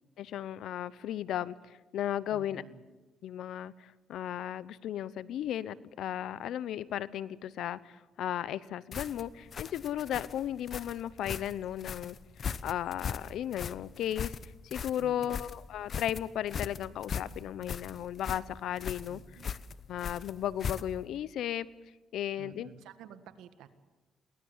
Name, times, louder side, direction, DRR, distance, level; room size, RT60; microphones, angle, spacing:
voice 1, 0.2-2.6 3.2-12.2 12.6-14.4 14.6-19.2 19.9-21.7 22.1-22.7, left 11 dB, 80° left, 19 dB, 0.8 m, -35 dB
voice 2, 2.3-2.8 15.0-15.4 19.1-19.5 22.4-23.7, right 8 dB, 90° right, 10 dB, 1.6 m, -51 dB
sound 1, 8.9-21.1, left 7 dB, 50° left, 0.9 m, -39 dB
23.0 x 18.0 x 7.3 m, 1.2 s
cardioid pair, 90°, 0 cm